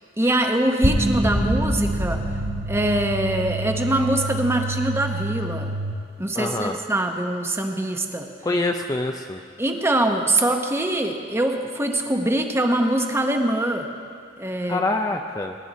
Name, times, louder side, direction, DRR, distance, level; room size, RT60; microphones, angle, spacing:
voice 1, 0.2-2.2 2.7-5.7 6.2-8.3 9.6-13.9 14.4-14.8 15.1-15.2, right 1 dB, 15° right, 4 dB, 0.9 m, -23 dB
sound 1, 0.8-5.9, right 1 dB, 65° right, 3.1 m, -25 dB
voice 2, 6.4-6.8 8.4-9.4 14.7-15.5, left 2 dB, 20° left, 4 dB, 0.5 m, -25 dB
22.5 x 10.0 x 4.1 m, 2.3 s
head